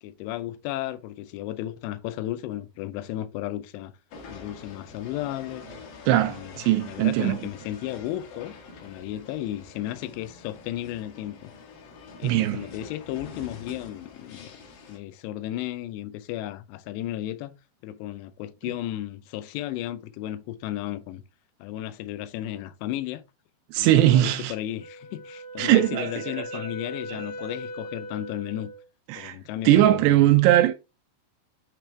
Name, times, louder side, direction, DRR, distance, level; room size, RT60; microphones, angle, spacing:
voice 1, 0.0-3.9 4.3-5.6 6.1-8.5 8.8-11.5 12.2-14.6 14.9-17.6 17.8-21.2 21.6-23.2 23.8-28.7 29.2-30.2, left 13 dB, 80° left, 2.7 m, -34 dB
sound 1, 4.1-15.0, left 4 dB, 65° left, 2.8 m, -46 dB
voice 2, 6.1-7.4 12.2-12.6 23.7-24.5 25.6-26.5 29.1-29.4 29.7-30.7, right 13 dB, 85° right, 2.4 m, -20 dB
Wind instrument woodwind instrument, 24.8-28.8, equal, 30° left, 1.0 m, -39 dB
9.1 x 3.1 x 3.4 m
omnidirectional pair, 5.3 m